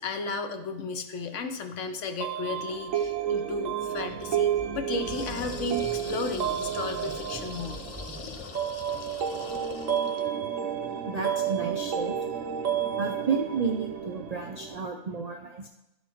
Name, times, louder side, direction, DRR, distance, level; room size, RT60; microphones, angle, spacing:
voice 1, 0.0-7.8, left 3 dB, 70° left, 7 dB, 1.1 m, -34 dB
sound 1, 2.2-14.8, right 9 dB, 85° right, 1.1 m, -31 dB
sound 2, 2.6-8.3, equal, 5° left, 0.8 m, -46 dB
sound 3, 5.0-10.3, left 5 dB, 45° left, 0.5 m, -42 dB
voice 2, 11.1-12.2 13.0-15.7, right 5 dB, 60° right, 3 dB, 0.4 m, -31 dB
12.0 x 4.2 x 4.4 m, 0.92 s
omnidirectional pair, 1.3 m